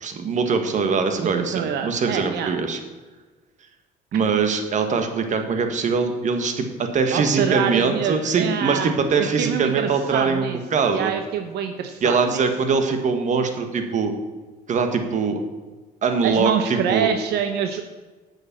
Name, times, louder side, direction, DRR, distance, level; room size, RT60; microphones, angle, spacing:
voice 1, 0.0-2.8 4.1-11.1 12.0-14.1 14.7-15.4 16.0-17.1, right 5 dB, 45° right, 6 dB, 1.5 m, -22 dB
voice 2, 1.2-2.5 7.1-10.6 10.9-12.4 16.2-17.8, right 8 dB, 75° right, 7 dB, 0.8 m, -26 dB
9.0 x 6.5 x 7.4 m, 1.3 s
cardioid pair, 110°, 17 cm